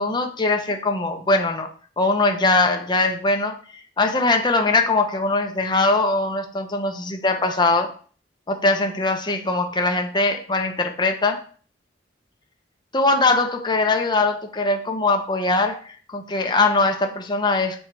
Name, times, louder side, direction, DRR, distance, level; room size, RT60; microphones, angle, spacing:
voice 1, 0.0-1.7 2.0-3.6 4.0-7.9 8.5-11.4 12.9-17.8, left 3 dB, 25° left, 4 dB, 0.9 m, -21 dB
6.7 x 4.4 x 4.7 m, 0.42 s
head